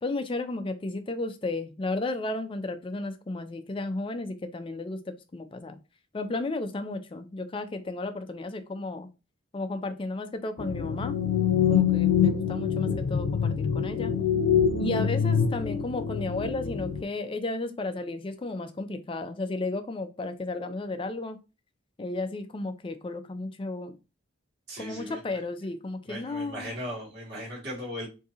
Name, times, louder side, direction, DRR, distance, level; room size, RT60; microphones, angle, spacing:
voice 1, 0.0-5.8 6.1-9.1 9.5-11.2 11.7-14.1 14.8-21.4 22.0-24.0 24.8-26.7, left 2 dB, 25° left, 9 dB, 0.3 m, -33 dB
sound 1, 10.6-17.0, left 7 dB, 80° left, 0.5 m, -25 dB
voice 2, 24.7-25.2 26.1-28.1, equal, 55° right, -5 dB, 1.4 m, -37 dB
3.6 x 2.7 x 2.8 m, 0.29 s
head